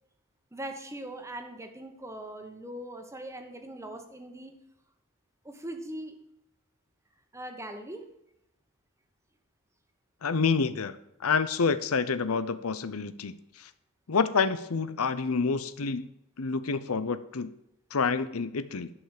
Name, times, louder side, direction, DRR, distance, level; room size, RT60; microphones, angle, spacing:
voice 1, 0.5-4.5 5.4-6.1 7.3-8.0, right 1 dB, 15° right, 6 dB, 1.4 m, -40 dB
voice 2, 10.2-11.0 11.2-13.7 14.1-16.1 16.4-17.5 17.9-18.9, left 5 dB, 85° left, 13 dB, 0.7 m, -28 dB
11.0 x 5.7 x 6.6 m, 0.81 s
head